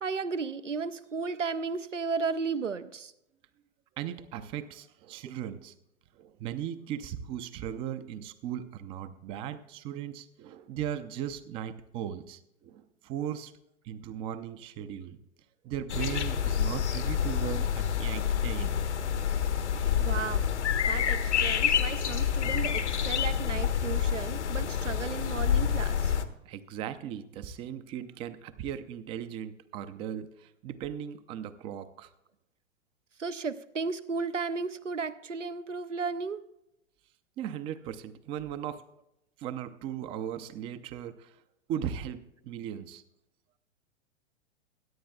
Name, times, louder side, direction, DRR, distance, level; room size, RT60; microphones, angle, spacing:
voice 1, 0.0-3.1 20.0-20.4 20.9-26.2 33.2-36.4, right 5 dB, 85° right, 0.7 m, -34 dB
voice 2, 4.0-5.7 6.2-13.5 13.8-15.2 15.6-18.8 26.5-32.1 37.4-38.8 39.4-41.3 41.7-43.0, right 10 dB, 15° right, 0.4 m, -37 dB
sound 1, 15.9-26.2, left 8 dB, 70° left, 1.1 m, -28 dB
21.5 x 9.9 x 2.3 m
figure-of-eight pair, 100°, 36 cm